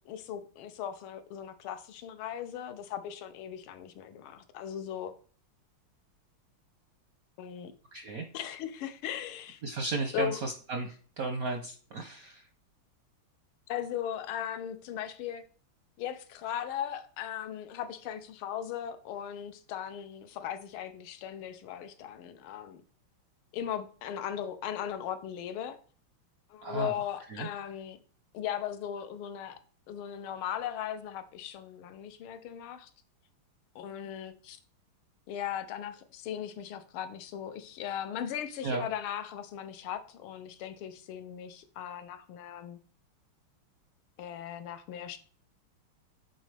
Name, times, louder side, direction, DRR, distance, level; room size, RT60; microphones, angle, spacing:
voice 1, 0.0-5.1 7.4-7.7 8.3-9.6 10.1-10.4 13.7-15.5 16.0-22.8 23.5-25.8 26.5-28.0 28.3-29.6 29.9-32.9 33.7-34.6 35.3-42.8 44.2-45.2, left 10 dB, 75° left, 1.6 m, -38 dB
voice 2, 7.9-8.3 9.6-12.4 26.6-26.9 27.3-27.5 38.6-38.8, right 3 dB, 65° right, 0.8 m, -34 dB
8.7 x 4.1 x 3.3 m
omnidirectional pair, 2.4 m